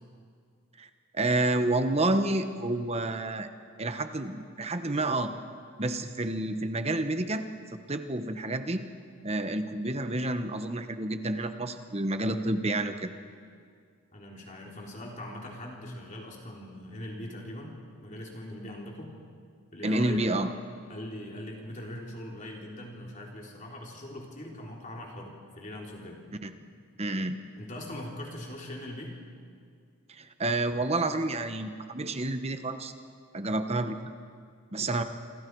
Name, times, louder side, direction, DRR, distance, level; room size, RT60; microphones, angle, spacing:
voice 1, 1.1-3.5 3.8-5.3 5.8-8.8 9.2-13.1 19.8-20.5 26.4-26.5 27.0-27.4 30.1-32.9 33.3-34.1 34.7-35.0, right 2 dB, 30° right, 8 dB, 1.1 m, -29 dB
voice 2, 14.1-19.2 19.7-20.2 20.9-26.2 27.6-29.2, left 1 dB, 35° left, -1 dB, 3.4 m, -41 dB
27.0 x 26.5 x 4.7 m, 2.2 s
head